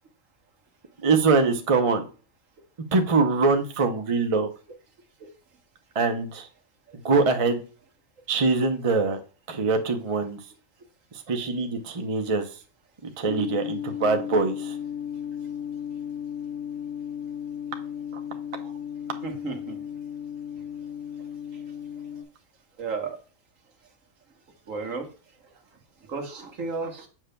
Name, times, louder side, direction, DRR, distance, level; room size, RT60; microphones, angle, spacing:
voice 1, 1.0-2.0 2.9-4.5 5.9-6.5 7.0-7.6 8.3-9.2 9.5-10.4 11.1-12.5 13.0-14.8 18.1-18.2 18.6-18.7, right 4 dB, 30° right, 5 dB, 0.7 m, -23 dB
sound 1, 13.3-22.2, left 9 dB, 80° left, 1.8 m, -35 dB
voice 2, 19.2-19.8 22.8-23.2 24.7-25.1 26.1-27.1, right 4 dB, 70° right, 4 dB, 1.6 m, -32 dB
7.4 x 6.5 x 2.2 m, 0.37 s
omnidirectional pair, 1.4 m